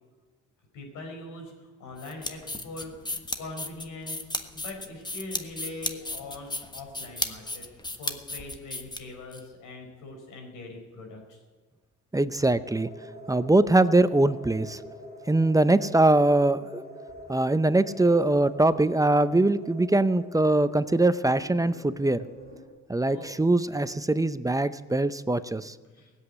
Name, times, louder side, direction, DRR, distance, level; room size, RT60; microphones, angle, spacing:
voice 1, 0.7-4.2 4.5-11.4 23.0-23.4 25.9-26.1, left 2 dB, 85° left, 2 dB, 5.1 m, -42 dB
sound 1, 2.0-9.4, left 2 dB, 15° left, 1.3 m, -34 dB
voice 2, 12.1-12.9 13.3-14.8 15.3-16.8 17.3-22.2 22.9-25.7, right 2 dB, 10° right, 13 dB, 0.6 m, -22 dB
sound 2, 12.6-22.7, left 1 dB, 35° left, 4.5 m, -45 dB
17.5 x 8.1 x 9.8 m, 1.4 s
cardioid pair, 90°, 30 cm